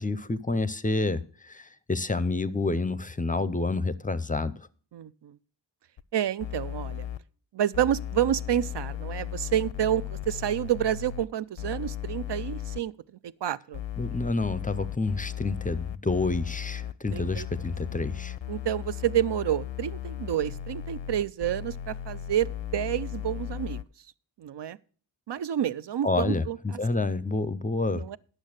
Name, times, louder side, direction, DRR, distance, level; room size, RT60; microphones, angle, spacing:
voice 1, 0.0-4.5 14.0-18.4 26.0-28.0, left 3 dB, 20° left, 0.5 m, -28 dB
voice 2, 4.9-5.4 6.1-7.1 7.5-12.9 13.2-13.8 17.1-17.5 18.5-22.5 22.7-23.8 24.4-24.8 25.3-26.8 27.9-28.2, right 11 dB, 70° right, 0.5 m, -29 dB
sound 1, 6.0-6.1 6.4-7.2 7.7-11.3 11.6-12.8 13.7-23.8, left 12 dB, 85° left, 0.6 m, -36 dB
10.5 x 6.4 x 6.4 m
wide cardioid pair, 95°, 44 cm